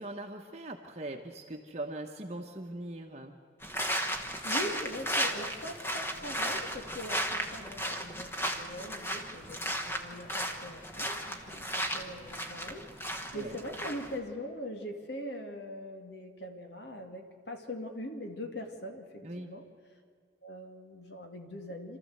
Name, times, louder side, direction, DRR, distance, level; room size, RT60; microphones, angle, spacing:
voice 1, 0.0-3.4 13.3-13.6 19.2-19.6, right 1 dB, 35° right, 2 dB, 1.1 m, -41 dB
sound 1, 3.6-14.2, equal, 15° left, 1.2 m, -35 dB
voice 2, 4.4-19.6 20.4-22.0, equal, 65° left, 4 dB, 2.3 m, -42 dB
27.5 x 13.5 x 7.9 m, 2.1 s
head